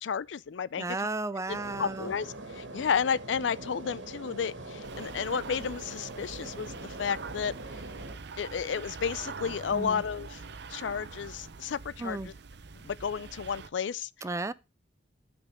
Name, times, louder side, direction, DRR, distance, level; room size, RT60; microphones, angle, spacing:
voice 1, 0.0-1.0 1.5-7.5 8.4-10.4 10.7-12.3 12.8-14.1, left 6 dB, 75° left, 0.4 m, -32 dB
voice 2, 0.8-2.1 9.7-10.0 12.0-12.3 14.2-14.5, right 2 dB, 15° right, 0.4 m, -34 dB
sound 1, 1.5-8.2, right 2 dB, 80° right, 1.9 m, -43 dB
sound 2, 4.8-13.7, right 4 dB, 65° right, 0.7 m, -44 dB
12.0 x 5.3 x 4.9 m
head